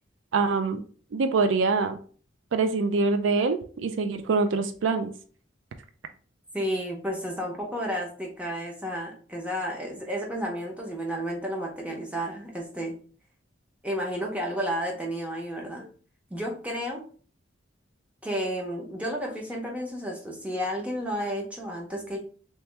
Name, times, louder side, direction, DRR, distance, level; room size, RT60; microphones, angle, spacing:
voice 1, 0.3-0.8 1.1-2.0 2.5-5.1, right 4 dB, 80° right, 0.4 m, -24 dB
voice 2, 6.5-12.9 13.8-15.9 16.3-17.0 18.2-22.2, equal, 5° right, 0.8 m, -32 dB
3.3 x 3.0 x 3.2 m
head